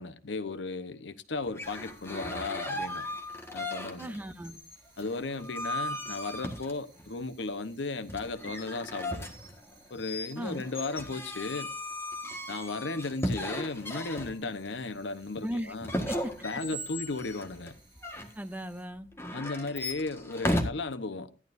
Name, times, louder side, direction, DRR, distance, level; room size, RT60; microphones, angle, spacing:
voice 1, 0.0-3.1 3.5-4.1 5.0-9.3 9.9-11.7 12.5-15.9 16.4-17.7 19.3-21.3, left 3 dB, 80° left, 0.9 m, -35 dB
sound 1, 1.4-4.2 4.4-7.1 8.1-14.7 15.8-18.3 19.1-20.6, left 1 dB, 15° left, 1.5 m, -36 dB
sound 2, 1.6-18.8, right 2 dB, 25° right, 6.1 m, -62 dB
voice 2, 4.0-4.6 10.4-10.6 15.4-15.7 16.1-16.3 18.4-19.1, equal, 10° right, 0.6 m, -37 dB
14.0 x 11.0 x 2.6 m
head